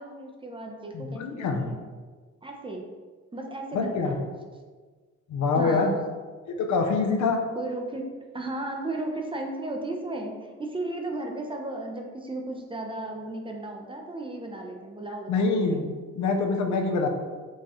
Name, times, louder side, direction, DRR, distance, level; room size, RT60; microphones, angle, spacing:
voice 1, 0.0-1.8 2.4-2.9 3.3-4.2 5.6-6.0 7.6-15.9, right 2 dB, 15° right, 2 dB, 0.6 m, -35 dB
voice 2, 0.9-1.7 3.7-4.2 5.3-5.9 6.5-7.4 15.3-15.9 16.1-17.1, left 4 dB, 70° left, 3 dB, 0.7 m, -25 dB
4.7 x 2.3 x 4.2 m, 1.4 s
cardioid pair, 90°, 30 cm